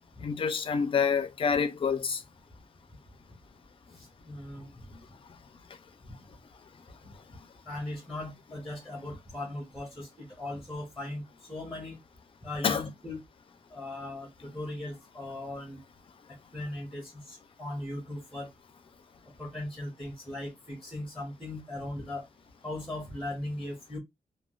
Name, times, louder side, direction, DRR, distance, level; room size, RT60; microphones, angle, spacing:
voice 1, 0.2-2.2 12.6-12.8, left 6 dB, 40° left, 0.4 m, -27 dB
voice 2, 3.9-4.7 7.0-7.1 7.7-11.2 11.5-12.0 12.4-13.2 13.7-15.8 16.5-18.5 19.4-22.3 22.6-24.0, left 1 dB, ahead, 0.8 m, -38 dB
3.5 x 2.2 x 2.3 m
wide cardioid pair, 165°, 15 cm